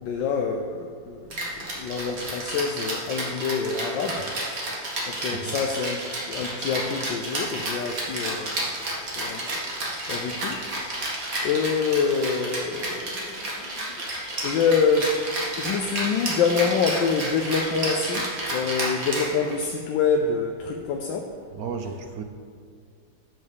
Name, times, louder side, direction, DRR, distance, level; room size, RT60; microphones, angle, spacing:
voice 1, 0.0-4.2 5.1-6.0 6.3-8.7 9.2-9.5 9.8-10.6 11.4-14.0 14.4-15.2 15.6-21.3, left 5 dB, 75° left, 3 dB, 1.4 m, -26 dB
Rattle (instrument), 1.3-19.8, right 1 dB, 45° right, 2.3 m, -31 dB
voice 2, 5.3-5.7 21.5-22.2, right 5 dB, 60° right, 6 dB, 1.0 m, -34 dB
7.9 x 7.6 x 6.8 m, 2.2 s
omnidirectional pair, 2.1 m